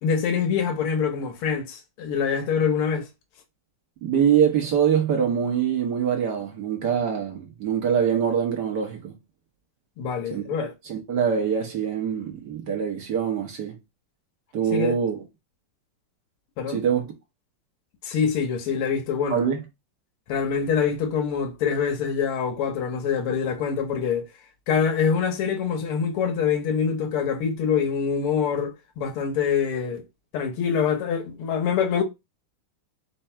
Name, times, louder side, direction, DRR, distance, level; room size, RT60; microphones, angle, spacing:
voice 1, 0.0-3.1 10.0-10.7 14.7-14.9 16.6-16.8 18.0-19.5 20.3-24.3 24.7-30.1 30.3-32.0, left 6 dB, 90° left, 1.9 m, -25 dB
voice 2, 4.0-9.2 10.3-10.4 10.9-13.8 14.5-15.2 16.7-17.1 19.3-19.6, right 8 dB, 60° right, 1.4 m, -24 dB
4.6 x 2.5 x 4.3 m
omnidirectional pair, 2.3 m